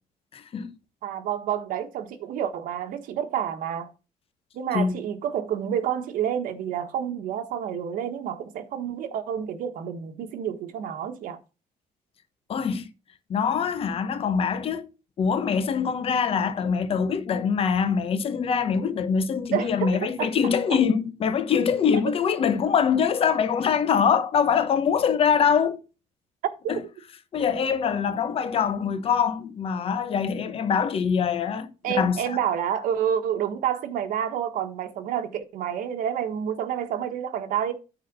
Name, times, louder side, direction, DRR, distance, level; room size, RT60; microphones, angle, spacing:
voice 1, 0.3-0.7 4.7-4.9 12.5-12.9 13.3-14.9 15.2-25.8 26.7-26.8 27.3-32.4, left 6 dB, 45° left, 1.0 m, -24 dB
voice 2, 1.0-3.9 4.5-11.4 19.5-20.3 20.7-20.8 22.0-22.1 26.6-26.8 27.8-27.9 31.8-37.7, right 9 dB, 85° right, 1.4 m, -29 dB
9.2 x 4.2 x 6.1 m
cardioid pair, 135°, 14 cm